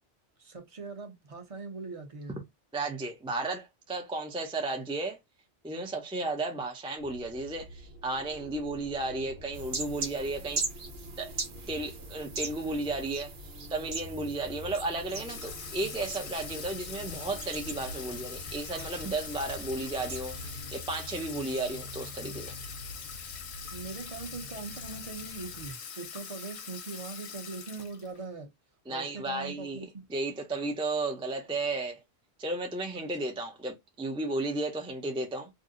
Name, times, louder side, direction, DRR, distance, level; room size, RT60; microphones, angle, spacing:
voice 1, 0.4-2.4 15.7-15.9 23.7-28.5 28.9-30.1 32.9-33.1, right 4 dB, 35° right, 0.8 m, -41 dB
voice 2, 2.7-5.2 5.6-10.6 11.2-11.3 11.7-13.3 13.7-22.5 28.9-29.8 30.1-32.0 32.4-35.5, right 2 dB, 5° right, 0.4 m, -34 dB
sound 1, 7.0-25.7, equal, 60° right, 1.1 m, -48 dB
sound 2, 9.5-20.5, right 2 dB, 85° right, 1.2 m, -40 dB
Water tap faucet / Sink (filling or washing), 15.1-28.2, left 6 dB, 80° left, 1.0 m, -43 dB
2.6 x 2.0 x 3.6 m
omnidirectional pair, 1.1 m